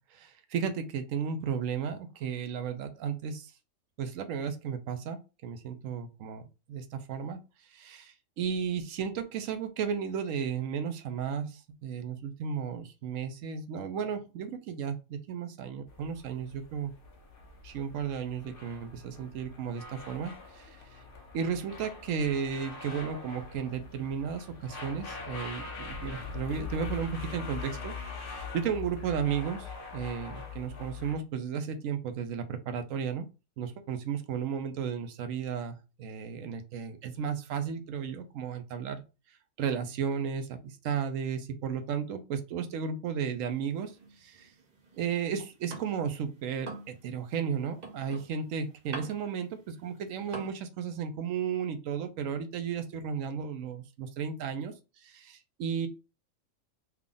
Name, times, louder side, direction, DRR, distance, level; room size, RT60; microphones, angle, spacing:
voice 1, 0.1-3.5 4.0-6.4 6.7-7.4 7.7-16.9 17.6-21.0 21.3-33.3 33.6-39.0 39.6-43.9 44.2-44.5 45.0-54.7 55.0-55.9, right 7 dB, 80° right, 8 dB, 1.0 m, -34 dB
sound 1, 15.9-31.1, left 4 dB, 50° left, 0.7 m, -42 dB
sound 2, 43.5-46.2 46.5-50.6, right 3 dB, 45° right, 0.6 m, -45 dB
3.4 x 2.4 x 3.7 m, 0.29 s
omnidirectional pair, 1.4 m